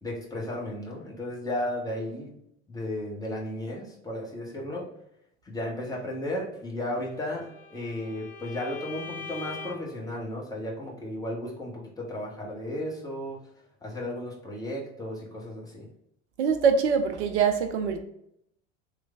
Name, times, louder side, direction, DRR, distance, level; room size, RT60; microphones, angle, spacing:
voice 1, 0.0-2.3 2.7-4.9 5.4-13.5 13.8-15.9, left 1 dB, 10° left, 1.0 m, -34 dB
Bowed string instrument, 7.0-10.0, left 5 dB, 35° left, 0.8 m, -42 dB
voice 2, 16.4-18.0, right 6 dB, 65° right, 0.5 m, -24 dB
3.1 x 2.2 x 3.5 m
figure-of-eight pair, 70°, 36 cm